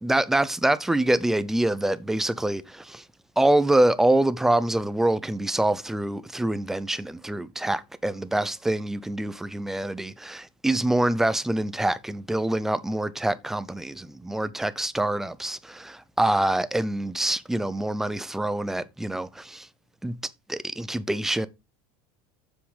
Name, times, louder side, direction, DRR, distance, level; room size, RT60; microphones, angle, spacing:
voice 1, 0.0-3.0 3.4-19.7 20.0-20.2 20.5-21.5, right 1 dB, 5° right, 0.5 m, -25 dB
7.3 x 6.9 x 4.9 m
supercardioid pair, 155°, 10 cm